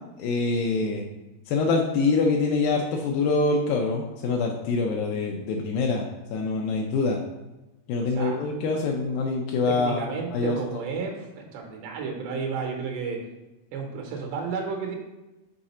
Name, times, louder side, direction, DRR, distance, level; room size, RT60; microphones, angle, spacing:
voice 1, 0.2-1.0 1.5-6.0 6.3-7.2 7.9-10.1 10.3-10.8, left 3 dB, 85° left, 0 dB, 2.1 m, -25 dB
voice 2, 8.0-8.5 9.7-13.2 13.7-15.0, right 5 dB, 80° right, 2 dB, 3.0 m, -32 dB
6.5 x 3.7 x 4.2 m, 1.0 s
omnidirectional pair, 4.8 m